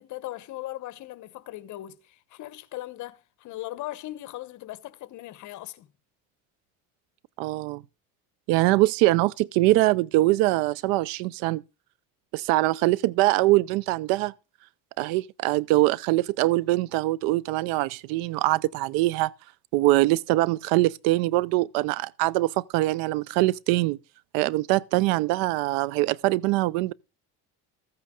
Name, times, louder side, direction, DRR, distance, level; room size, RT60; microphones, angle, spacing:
voice 1, 0.0-5.9, left 16 dB, 60° left, 1.0 m, -39 dB
voice 2, 7.4-7.8 8.5-11.6 12.3-14.3 15.0-19.3 19.7-24.0 24.3-26.9, right 18 dB, 85° right, 0.6 m, -23 dB
14.5 x 8.6 x 3.7 m
cardioid pair, 120°, 34 cm